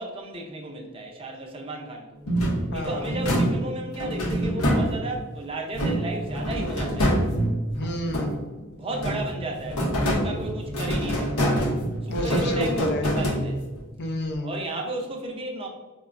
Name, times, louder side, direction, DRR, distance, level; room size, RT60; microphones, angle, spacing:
voice 1, 0.0-2.2 2.7-7.2 8.8-11.7 12.0-13.6 14.4-15.7, right 2 dB, 25° right, 1 dB, 0.4 m, -34 dB
sound 1, 2.3-5.3 5.7-8.6 8.9-13.9, equal, 80° left, 0.7 m, -26 dB
voice 2, 2.7-3.1 7.7-8.4 12.1-13.1 14.0-14.5, equal, 50° left, 4 dB, 0.4 m, -29 dB
4.7 x 2.1 x 2.4 m, 1.3 s
head